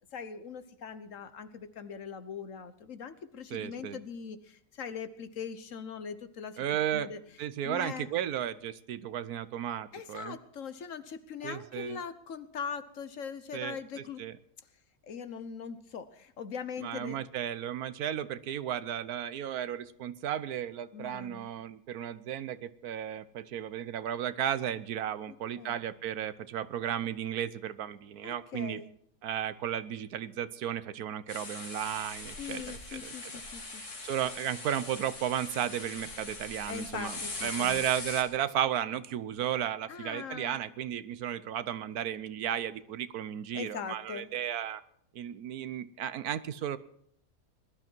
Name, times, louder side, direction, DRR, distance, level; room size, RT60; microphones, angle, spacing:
voice 1, 0.1-6.6 6.9-7.2 7.6-8.1 9.9-14.2 15.0-17.2 20.9-21.5 25.3-25.8 28.2-28.9 32.4-33.8 36.7-37.8 39.9-40.6 43.5-44.3, left 6 dB, 60° left, 12 dB, 1.3 m, -41 dB
voice 2, 3.5-4.0 6.6-7.1 7.4-10.4 11.4-12.0 13.5-13.8 14.2-14.4 16.8-28.8 29.2-33.1 33.6-37.1 37.4-44.8 45.1-46.8, right 10 dB, 80° right, 15 dB, 1.3 m, -34 dB
sound 1, 31.3-38.2, left 3 dB, 85° left, 3.3 m, -41 dB
20.5 x 12.5 x 4.5 m, 0.71 s
omnidirectional pair, 1.6 m